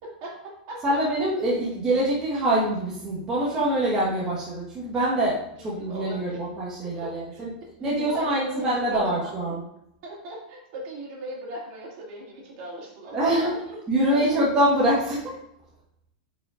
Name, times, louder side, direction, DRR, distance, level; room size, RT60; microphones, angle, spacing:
voice 1, 0.0-1.0 5.8-6.4 6.8-7.4 7.8-9.3 10.0-13.8 14.1-14.4, right 1 dB, 40° right, -3 dB, 2.4 m, -38 dB
voice 2, 0.8-7.5 7.8-9.6 13.1-13.5 13.9-15.3, right 1 dB, 15° right, -7 dB, 1.3 m, -24 dB
9.8 x 5.1 x 2.5 m, 0.79 s
supercardioid pair, 170°, 4 cm